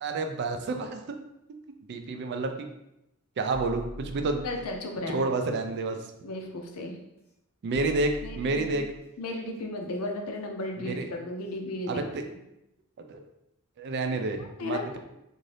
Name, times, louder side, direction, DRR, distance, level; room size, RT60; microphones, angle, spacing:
voice 1, 0.0-1.0 1.9-2.5 3.4-4.4 5.1-6.0 7.6-8.9 10.8-11.1 11.9-12.2 13.1-13.2 13.8-15.0, right 3 dB, 50° right, 6 dB, 0.3 m, -29 dB
sound 1, 3.5-4.8 6.6-6.8 7.7-9.0 10.8-11.0 11.5-11.6, equal, 45° left, 0.7 m, -43 dB
voice 2, 4.4-5.2 6.2-7.0 8.2-8.8 9.2-12.0 14.4-15.0, left 2 dB, 75° left, 3 dB, 0.5 m, -35 dB
2.6 x 2.5 x 3.2 m, 0.86 s
head